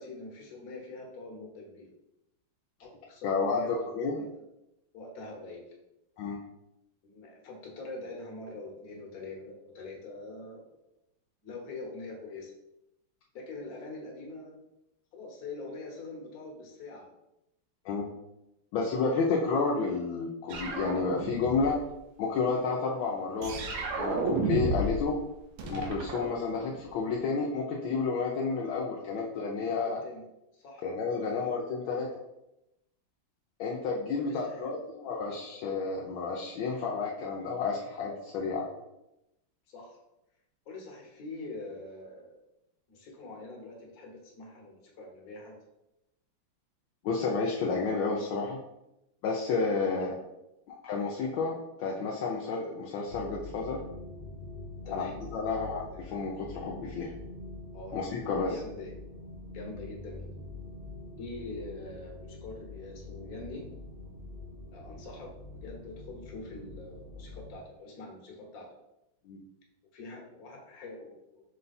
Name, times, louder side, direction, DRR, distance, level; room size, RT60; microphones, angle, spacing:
voice 1, 0.0-1.9 2.8-4.3 4.9-5.6 7.0-10.6 11.4-12.5 13.3-14.6 15.1-17.1 29.6-30.2 30.5-30.8 31.3-31.5 34.1-34.7 39.7-40.0 40.7-42.4 42.9-45.5 49.9-50.1 54.8-55.2 57.7-58.0 58.3-58.9 59.5-60.3 61.2-63.7 64.7-65.3 65.6-68.7 69.9-71.4, left 2 dB, 50° left, -1 dB, 1.3 m, -44 dB
voice 2, 3.2-4.2 6.2-6.4 17.8-18.1 18.7-21.8 22.2-23.5 24.0-25.2 25.6-30.0 30.8-32.2 33.6-38.7 47.0-48.6 49.2-50.1 50.7-53.8 54.9-57.1 57.9-58.6 69.3-69.4, left 4 dB, 75° left, -2 dB, 1.3 m, -31 dB
sound 1, 20.5-21.8 23.4-25.1 25.3-27.0, right 3 dB, 90° right, 1.6 m, -32 dB
sound 2, 53.1-67.6, left 2 dB, 70° right, 0.5 m, -45 dB
5.4 x 2.3 x 3.9 m, 0.89 s
omnidirectional pair, 2.4 m